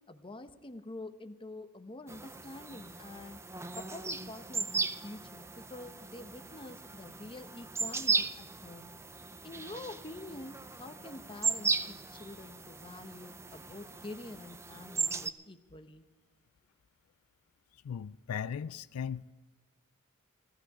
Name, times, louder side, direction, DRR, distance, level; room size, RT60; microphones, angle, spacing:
voice 1, 0.1-3.4 3.7-8.9 9.4-16.0, left 2 dB, 25° left, 8 dB, 0.9 m, -47 dB
sound 1, 2.1-15.3, right 4 dB, 10° right, 0.4 m, -37 dB
voice 2, 17.8-19.3, left 7 dB, 80° left, 15 dB, 0.4 m, -37 dB
18.0 x 14.0 x 4.9 m, 1.3 s
head